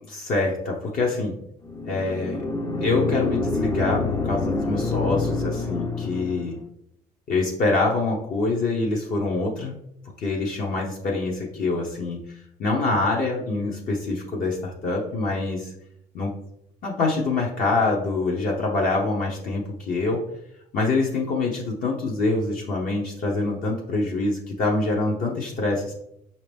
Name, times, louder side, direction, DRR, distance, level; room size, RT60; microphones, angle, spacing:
voice 1, 0.1-1.3 1.8-2.4 2.8-6.6 7.3-9.7 10.2-12.2 12.6-15.7 16.1-16.3 16.8-20.3 20.7-25.9, left 3 dB, 55° left, -2 dB, 0.9 m, -25 dB
sound 1, 1.6-6.6, left 3 dB, 20° left, 0.4 m, -27 dB
5.2 x 2.8 x 3.3 m, 0.75 s
cardioid pair, 110°, 17 cm